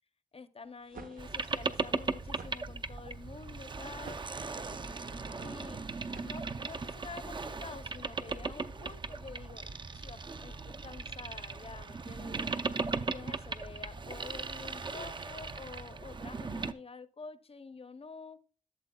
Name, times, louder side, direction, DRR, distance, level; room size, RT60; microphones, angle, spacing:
voice 1, 0.3-4.2 5.4-5.8 6.2-9.7 9.9-12.5 13.1-18.4, left 4 dB, 45° left, 0.6 m, -48 dB
sound 1, 0.6-6.9, right 4 dB, 85° right, 1.0 m, -53 dB
Boat Water vehicle, 1.2-16.7, right 4 dB, 35° right, 0.5 m, -38 dB
12.5 x 7.3 x 2.2 m
wide cardioid pair, 115°, 14 cm